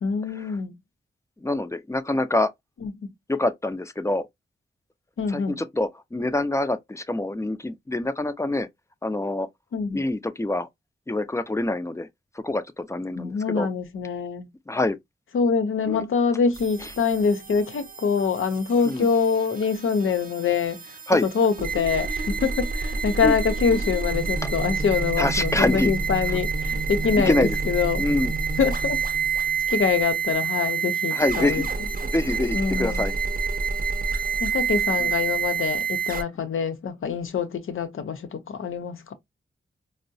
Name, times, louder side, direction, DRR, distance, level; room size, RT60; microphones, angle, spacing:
voice 1, 0.0-0.7 2.8-2.9 5.2-5.6 9.7-10.0 13.2-14.5 15.3-20.8 21.3-28.0 28.6-29.0 29.7-31.6 32.5-33.1 34.4-39.1, left 6 dB, 80° left, 0.7 m, -25 dB
voice 2, 1.4-2.5 3.3-4.3 5.3-8.7 9.0-9.5 9.9-10.7 11.1-12.1 12.3-13.7 14.7-15.0 15.9-16.0 16.8-16.9 18.9-19.1 21.1-21.3 23.2-23.3 24.4-24.5 25.2-25.9 26.3-26.4 27.2-27.6 28.0-28.3 31.1-31.8 32.0-33.1 35.0-35.1, left 2 dB, 15° left, 0.4 m, -25 dB
sound 1, 16.5-36.2, right 5 dB, 45° right, 0.7 m, -28 dB
4.5 x 2.0 x 2.6 m
wide cardioid pair, 75°, 21 cm